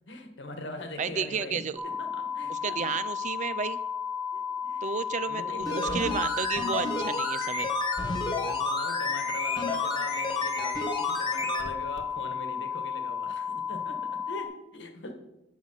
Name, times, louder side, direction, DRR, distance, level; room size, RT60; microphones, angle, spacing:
voice 1, 0.1-3.0 4.3-5.0 5.3-6.2 8.3-15.1, left 2 dB, 80° left, 6 dB, 1.4 m, -42 dB
voice 2, 1.0-1.8 2.5-3.8 4.8-7.7, right 6 dB, 40° right, 16 dB, 0.4 m, -32 dB
sound 1, 1.8-14.4, left 7 dB, 5° right, 1.1 m, -33 dB
sound 2, 5.6-11.7 12.0-12.1, left 2 dB, 25° left, 1.4 m, -31 dB
9.3 x 6.2 x 5.6 m, 0.93 s
head